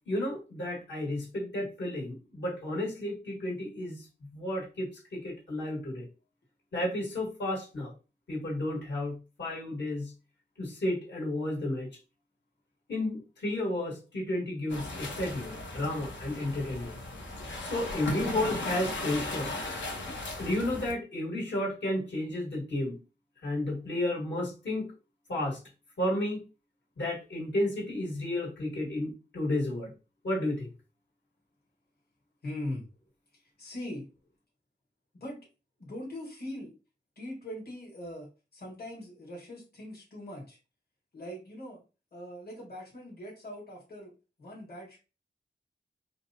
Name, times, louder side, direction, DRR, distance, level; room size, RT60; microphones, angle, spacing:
voice 1, 0.1-4.1 4.3-6.1 6.7-7.9 8.3-10.1 10.6-11.9 12.9-17.0 17.6-19.5 20.4-23.0 23.4-24.9 25.3-25.6 26.0-26.4 27.0-29.9 30.2-30.7, left 1 dB, 75° left, -4 dB, 1.5 m, -32 dB
sound 1, 14.7-20.9, left 2 dB, 90° left, 0.9 m, -37 dB
voice 2, 32.4-32.8 33.6-34.0 35.2-35.4 35.8-36.7 37.2-40.6 41.1-41.8 42.1-44.1 44.4-45.0, left 1 dB, 55° left, -3 dB, 1.4 m, -41 dB
4.4 x 2.1 x 2.7 m, 0.32 s
wide cardioid pair, 130°, 19 cm